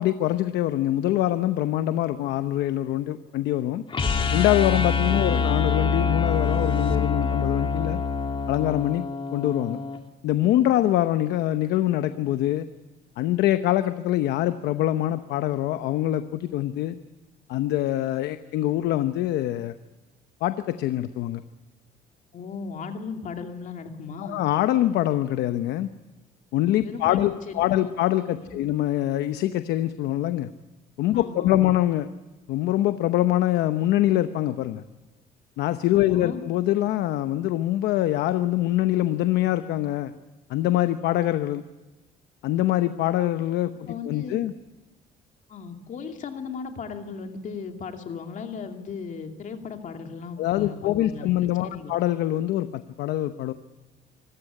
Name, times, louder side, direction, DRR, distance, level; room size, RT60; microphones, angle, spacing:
voice 1, 0.0-3.8 4.3-8.0 8.5-9.0 9.3-9.8 10.2-12.7 13.2-17.0 17.5-19.7 20.4-21.4 24.2-25.9 26.5-30.5 31.0-32.1 32.5-34.8 35.6-40.1 40.5-41.6 42.4-44.5 50.4-53.5, left 13 dB, 80° left, 11 dB, 0.9 m, -24 dB
sound 1, 3.9-10.0, left 5 dB, 30° left, 2.0 m, -25 dB
voice 2, 22.3-24.4 26.8-27.6 28.4-28.7 31.1-31.7 36.0-36.4 43.9-44.4 45.5-51.3 51.6-52.0, left 5 dB, 50° left, 4 dB, 2.7 m, -36 dB
25.5 x 15.0 x 10.0 m, 1.1 s
cardioid pair, 110°, 17 cm